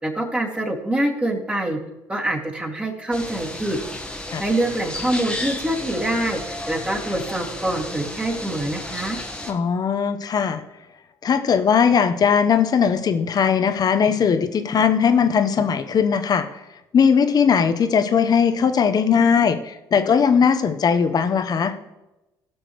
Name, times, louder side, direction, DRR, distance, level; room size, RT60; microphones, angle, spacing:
voice 1, 0.0-1.8 2.1-3.8 4.4-9.2, right 1 dB, 15° right, -1 dB, 2.5 m, -25 dB
sound 1, 3.1-9.5, left 1 dB, 10° left, 1.5 m, -33 dB
voice 2, 9.5-10.6 11.2-16.5 16.9-21.7, left 6 dB, 45° left, 9 dB, 1.0 m, -19 dB
16.0 x 6.4 x 3.2 m, 0.98 s
hypercardioid pair, 65°, 9 cm